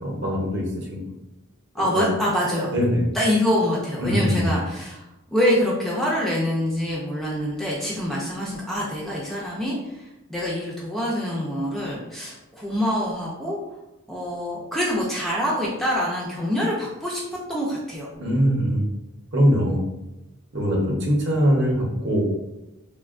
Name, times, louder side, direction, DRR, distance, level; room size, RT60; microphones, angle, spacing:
voice 1, 0.0-1.0 1.8-2.0 2.7-3.1 4.0-4.5 18.2-18.8 19.3-19.8 20.5-22.2, equal, 55° right, -2 dB, 0.7 m, -22 dB
voice 2, 1.7-2.7 3.1-13.6 14.1-17.2 17.5-18.1, equal, ahead, -6 dB, 0.4 m, -25 dB
3.3 x 2.2 x 2.4 m, 0.95 s
head